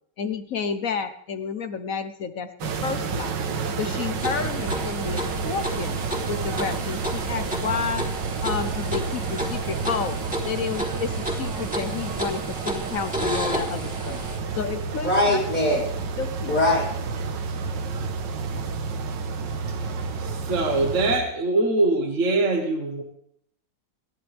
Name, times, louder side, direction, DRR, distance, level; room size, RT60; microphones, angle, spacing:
voice 1, 0.2-2.5 2.8-3.4 3.8-6.0 6.3-8.1 8.4-10.2 10.4-14.2 14.5-15.4 16.2-16.5, left 6 dB, 55° left, 10 dB, 1.2 m, -30 dB
sound 1, 2.6-21.2, right 5 dB, 80° right, 1.9 m, -30 dB
sound 2, 4.2-14.4, equal, 5° right, 2.9 m, -32 dB
voice 2, 15.0-15.8 16.5-16.9, left 1 dB, 75° left, -7 dB, 6.7 m, -21 dB
voice 3, 20.2-23.0, right 2 dB, 45° right, 2 dB, 1.8 m, -23 dB
27.0 x 11.0 x 3.5 m, 0.70 s
omnidirectional pair, 1.9 m